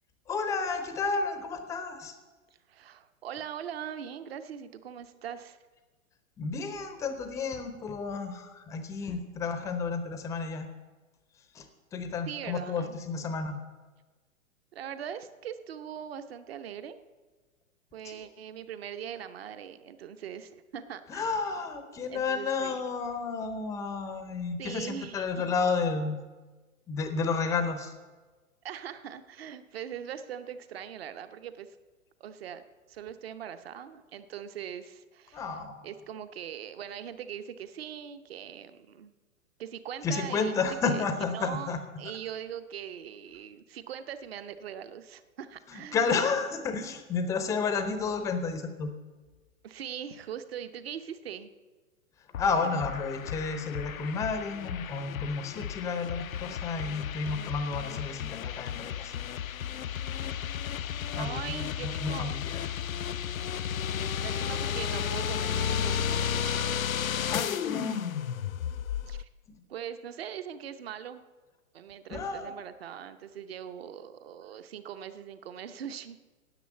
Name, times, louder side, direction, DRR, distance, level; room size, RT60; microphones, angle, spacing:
voice 1, 0.3-2.2 6.4-10.7 11.5-11.7 11.9-13.6 18.0-18.2 21.1-26.2 26.9-27.9 35.3-35.9 40.0-41.8 45.7-48.9 52.4-59.1 59.6-60.0 61.1-62.6 67.1-68.0 72.1-72.5, left 4 dB, 10° left, 8 dB, 0.6 m, -31 dB
voice 2, 2.7-5.6 12.3-13.0 14.7-17.0 17.9-21.3 22.1-22.8 24.6-25.5 28.6-31.7 32.2-35.5 35.8-39.1 39.6-41.0 41.3-46.2 49.6-51.5 61.1-62.4 64.2-66.8 69.1-69.3 69.7-71.2 71.7-76.2, right 9 dB, 45° right, 10 dB, 0.9 m, -41 dB
sound 1, 52.3-69.2, left 8 dB, 75° left, 0.5 m, -33 dB
10.0 x 8.3 x 8.1 m, 1.3 s
figure-of-eight pair, 115°, 42 cm